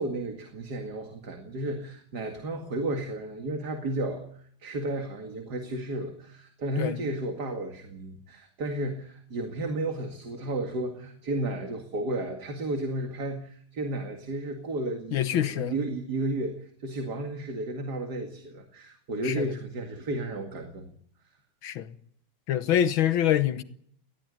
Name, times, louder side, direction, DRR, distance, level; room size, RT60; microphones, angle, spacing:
voice 1, 0.0-20.9, right 2 dB, 50° right, 2.6 m, -33 dB
voice 2, 15.1-15.8 19.2-19.5 21.6-21.9 22.5-23.6, left 10 dB, 75° left, 1.9 m, -25 dB
19.5 x 16.0 x 9.9 m
omnidirectional pair, 2.2 m